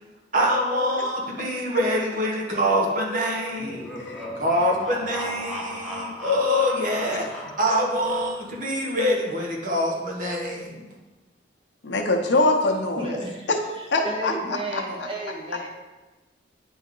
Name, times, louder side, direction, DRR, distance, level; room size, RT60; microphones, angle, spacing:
voice 1, 0.3-3.9 4.3-10.8, equal, 45° right, -2 dB, 1.3 m, -25 dB
sound 1, 3.5-8.6, left 1 dB, ahead, 0.8 m, -36 dB
voice 2, 11.8-13.2 13.5-13.6 13.9-15.1, left 2 dB, 80° left, 2 dB, 0.8 m, -24 dB
voice 3, 13.0-13.5 13.8-15.7, right 2 dB, 30° right, -1 dB, 1.1 m, -32 dB
9.2 x 3.6 x 3.8 m, 1.2 s
head